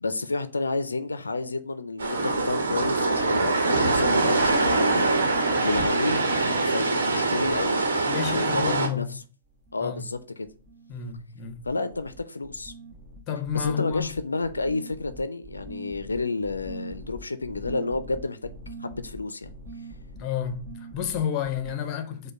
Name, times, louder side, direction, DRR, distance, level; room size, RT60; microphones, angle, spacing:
voice 1, 0.0-5.2 5.6-7.8 8.3-9.2 9.7-10.5 11.7-12.7 13.5-18.5 18.8-19.5, left 3 dB, 90° left, 0.3 m, -30 dB
sound 1, 2.0-8.9, right 3 dB, 75° right, 1.1 m, -24 dB
voice 2, 8.1-9.2 9.8-10.0 10.9-11.7 13.3-14.1 20.1-22.3, left 8 dB, 35° left, 0.7 m, -31 dB
sound 2, 8.9-9.2 9.4-10.2 10.4-11.2 11.4-21.7, right 2 dB, 20° right, 1.2 m, -43 dB
5.1 x 2.2 x 4.5 m
hypercardioid pair, 120°, 0 cm